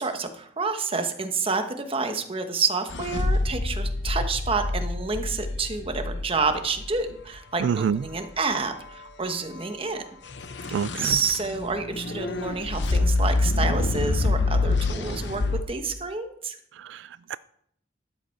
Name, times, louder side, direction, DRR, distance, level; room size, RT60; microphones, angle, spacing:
voice 1, 0.0-10.0 10.7-15.4 15.7-16.6, right 4 dB, 30° right, 1.1 m, -29 dB
sound 1, 2.9-7.0 10.3-15.6, left 2 dB, 75° left, 0.8 m, -26 dB
voice 2, 7.6-8.1 10.7-11.2 16.7-17.4, right 7 dB, 90° right, 0.3 m, -27 dB
12.0 x 7.7 x 4.5 m
head